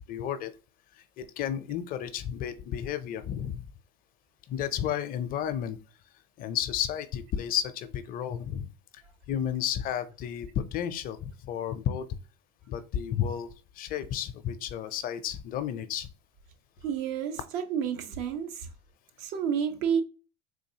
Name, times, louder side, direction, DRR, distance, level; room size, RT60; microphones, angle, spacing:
voice 1, 0.1-0.5 1.2-3.7 4.5-5.8 6.4-8.7 9.3-12.1 12.7-13.5 13.8-16.1, left 9 dB, 45° left, 0.5 m, -32 dB
voice 2, 16.8-18.7 19.2-20.0, right 8 dB, 65° right, 0.7 m, -30 dB
3.8 x 2.6 x 2.8 m
supercardioid pair, 100°, 20 cm